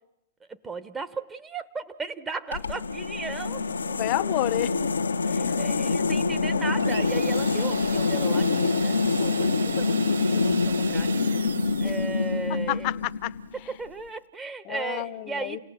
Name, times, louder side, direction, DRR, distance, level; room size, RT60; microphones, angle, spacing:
voice 1, 0.5-3.6 5.2-11.1 11.8-12.9 13.6-15.6, right 4 dB, 20° right, 9 dB, 1.3 m, -36 dB
sound 1, 2.5-13.6, left 4 dB, 85° left, 1.1 m, -26 dB
voice 2, 4.0-4.9 5.5-5.6 11.8-11.9 12.7-13.3 14.7-15.6, left 18 dB, 45° left, 16 dB, 1.0 m, -29 dB
sound 2, 6.8-12.4, right 6 dB, 80° right, 1.0 m, -37 dB
29.0 x 18.5 x 7.7 m, 0.88 s
hypercardioid pair, 110°, 0 cm